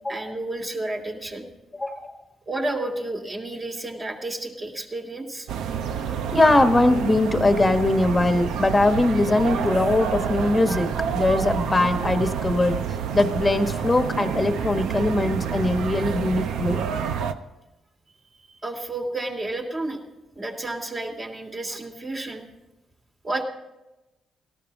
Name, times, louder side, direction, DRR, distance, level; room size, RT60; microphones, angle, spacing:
voice 1, 0.1-1.5 2.5-5.5 18.3-20.0 20.3-22.5 23.2-23.4, right 2 dB, 30° right, 2 dB, 2.9 m, -31 dB
voice 2, 1.7-2.1 5.9-6.0 6.3-12.8 13.1-16.8, left 2 dB, 20° left, 7 dB, 1.3 m, -21 dB
sound 1, 5.5-17.3, right 7 dB, 80° right, 0.8 m, -28 dB
18.0 x 14.0 x 3.6 m, 0.99 s
cardioid pair, 90°, 0 cm